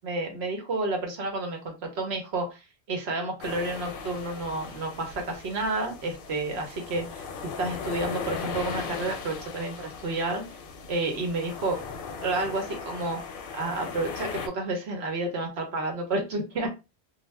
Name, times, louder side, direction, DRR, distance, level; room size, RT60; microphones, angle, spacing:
voice 1, 0.0-7.3 7.6-10.4 10.9-11.8 12.2-13.2 13.5-16.7, right 2 dB, 80° right, 3 dB, 1.1 m, -30 dB
sound 1, 3.4-14.5, left 5 dB, 65° left, 0.7 m, -38 dB
2.6 x 2.1 x 3.2 m, 0.27 s
omnidirectional pair, 1.1 m